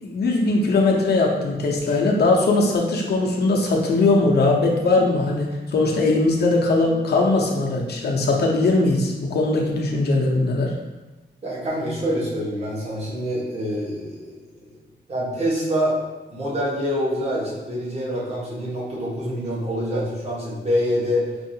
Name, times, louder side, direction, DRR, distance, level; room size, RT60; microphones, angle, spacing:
voice 1, 0.0-10.7, left 2 dB, 65° left, -1 dB, 0.7 m, -20 dB
voice 2, 11.4-14.3 14.7-14.8 15.1-16.0 16.3-21.3, equal, 35° right, -7 dB, 1.2 m, -25 dB
4.6 x 2.5 x 2.7 m, 1.1 s
wide cardioid pair, 140°, 18 cm